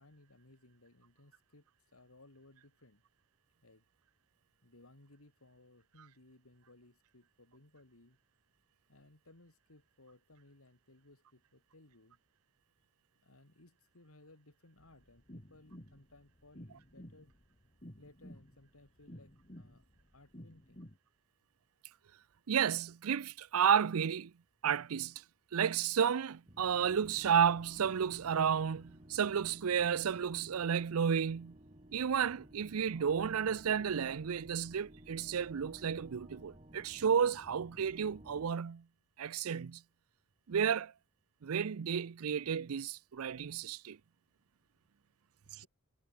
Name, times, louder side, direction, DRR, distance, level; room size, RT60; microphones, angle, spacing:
voice 1, 0.0-3.0 3.6-3.9 4.6-8.2 8.9-12.2 13.2-17.3 18.0-19.8 20.1-20.8 45.6-45.7, left 2 dB, 80° left, 3.3 m, -62 dB
sound 1, 14.8-21.0, equal, 30° left, 3.8 m, -53 dB
voice 2, 22.5-24.3 24.6-25.1 25.5-31.6 31.9-38.8 39.2-39.8 40.5-40.9 41.4-44.0 45.5-45.6, right 7 dB, 85° right, 0.5 m, -32 dB
sound 2, 26.5-38.5, right 1 dB, 30° right, 3.2 m, -56 dB
head